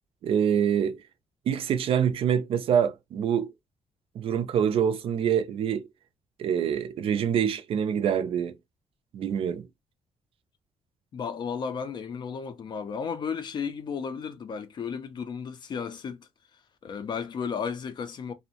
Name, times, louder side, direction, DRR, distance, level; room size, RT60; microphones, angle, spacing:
voice 1, 0.2-1.0 1.5-3.5 4.2-5.8 6.4-8.5 9.1-9.6, right 8 dB, 55° right, 0.4 m, -25 dB
voice 2, 11.1-16.3 16.8-18.3, left 6 dB, 40° left, 0.4 m, -34 dB
2.6 x 2.0 x 2.7 m
cardioid pair, 160°, 12 cm